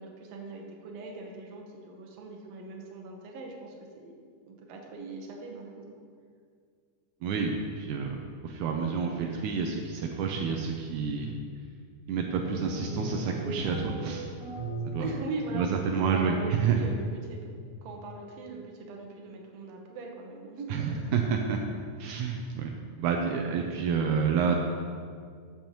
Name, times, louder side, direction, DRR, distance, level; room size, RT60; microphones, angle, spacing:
voice 1, 0.0-6.0 15.0-15.7 16.1-17.5 17.8-21.0, right 3 dB, 65° right, 0 dB, 2.1 m, -41 dB
voice 2, 7.2-11.4 12.1-14.3 14.8-15.1 15.5-16.8 20.7-21.6 22.0-22.7 23.0-24.6, right 6 dB, 80° right, 2 dB, 2.1 m, -29 dB
sound 1, 12.4-16.0, right 3 dB, 35° right, 2.8 m, -37 dB
14.0 x 7.1 x 3.0 m, 2.1 s
omnidirectional pair, 3.6 m